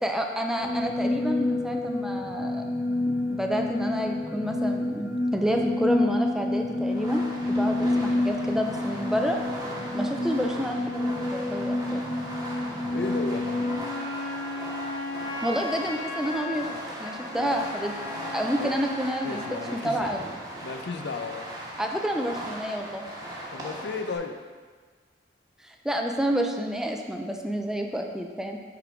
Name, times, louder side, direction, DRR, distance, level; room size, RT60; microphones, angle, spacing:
voice 1, 0.0-2.6 3.3-9.4 9.9-12.1 15.4-20.2 21.8-23.1 25.6-28.6, equal, 5° right, 2 dB, 0.4 m, -29 dB
sound 1, 0.6-13.8, left 2 dB, 50° left, 1.9 m, -28 dB
Fireworks, 6.9-24.2, right 1 dB, 20° right, 1.2 m, -39 dB
voice 2, 12.9-13.6 18.6-18.8 19.2-20.2 20.6-21.5 23.5-24.4, left 4 dB, 70° left, 6 dB, 0.5 m, -34 dB
Wind instrument woodwind instrument, 13.5-19.6, left 3 dB, 25° left, 1.9 m, -36 dB
9.0 x 3.8 x 3.5 m, 1.5 s
head